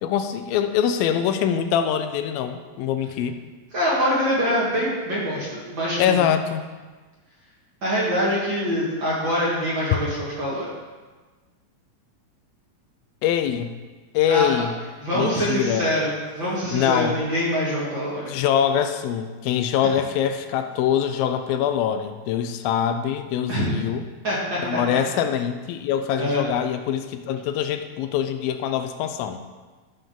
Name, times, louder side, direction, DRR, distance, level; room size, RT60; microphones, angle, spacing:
voice 1, 0.0-3.3 6.0-6.6 13.2-13.7 14.1-14.7 15.1-15.9 16.7-17.2 18.3-24.1 24.6-29.4, left 9 dB, 90° left, 8 dB, 2.4 m, -24 dB
voice 2, 3.7-6.2 7.8-10.6 14.3-14.5 15.0-18.3 19.8-19.9 23.5-23.7 24.2-24.8 26.2-26.4, equal, 40° right, -7 dB, 2.0 m, -24 dB
13.5 x 5.2 x 3.8 m, 1.3 s
omnidirectional pair, 4.1 m